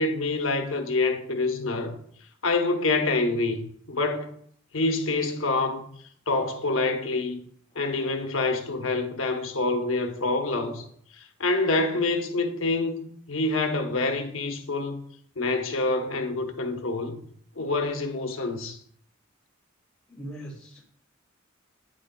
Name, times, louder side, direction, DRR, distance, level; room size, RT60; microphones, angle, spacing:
voice 1, 0.0-2.0 2.4-4.4 4.7-5.9 6.3-7.4 7.7-10.8 11.2-15.0 15.4-17.2 17.6-18.8, left 3 dB, 75° left, 0.9 m, -26 dB
voice 2, 20.1-21.0, right 1 dB, 5° left, 2.5 m, -41 dB
9.0 x 6.4 x 2.2 m
head